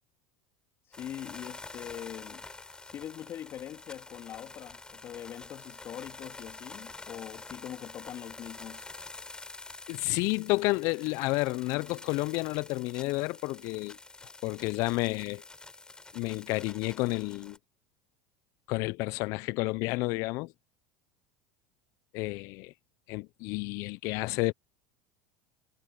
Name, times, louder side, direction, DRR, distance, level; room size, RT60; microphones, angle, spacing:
voice 1, 0.8-2.4 2.8-8.9, left 11 dB, 45° left, 3.5 m, -43 dB
sound 1, 0.9-17.6, left 3 dB, 15° left, 4.4 m, -47 dB
voice 2, 9.9-14.0 14.4-15.4 16.1-17.6 18.7-20.5 22.1-22.7 23.1-24.5, left 23 dB, 60° left, 1.0 m, -30 dB
hypercardioid pair, 80°, 6 cm